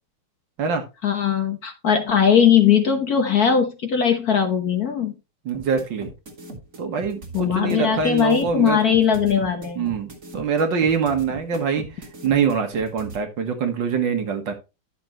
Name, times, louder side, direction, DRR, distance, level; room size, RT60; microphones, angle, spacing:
voice 1, 1.0-5.1 7.3-9.9, left 8 dB, 50° left, 1.4 m, -19 dB
sound 1, 5.5-13.2, right 2 dB, 40° right, 2.5 m, -38 dB
voice 2, 5.5-6.1 6.8-8.8 9.8-11.9 12.2-14.5, right 6 dB, 60° right, 2.0 m, -24 dB
11.0 x 6.9 x 3.0 m
omnidirectional pair, 2.3 m